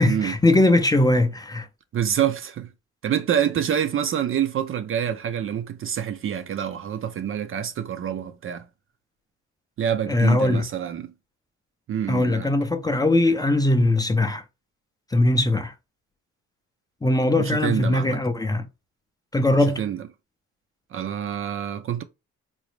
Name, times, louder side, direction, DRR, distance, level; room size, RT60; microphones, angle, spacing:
voice 1, 0.0-1.7 10.1-10.6 12.1-14.4 15.1-15.7 17.0-18.7 19.3-19.9, left 2 dB, 15° left, 0.5 m, -20 dB
voice 2, 1.9-2.7 3.0-8.6 9.8-11.1 11.9-12.5 17.3-18.2 19.8-20.0 20.9-22.0, right 9 dB, 45° right, 0.4 m, -26 dB
3.9 x 2.1 x 3.1 m
cardioid pair, 90°, 30 cm